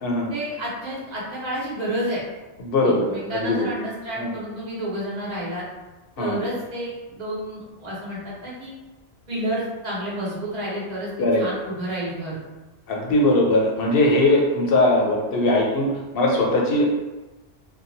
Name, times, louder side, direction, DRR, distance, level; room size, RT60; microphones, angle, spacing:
voice 1, 0.3-2.2 2.8-5.6 6.2-8.7 9.3-11.1 11.4-12.4, right 1 dB, 40° right, -8 dB, 1.0 m, -30 dB
voice 2, 2.6-3.7 4.2-4.3 6.2-6.4 11.2-11.4 12.9-16.9, left 1 dB, 60° left, -1 dB, 0.8 m, -20 dB
2.8 x 2.3 x 2.6 m, 1.1 s
omnidirectional pair, 1.2 m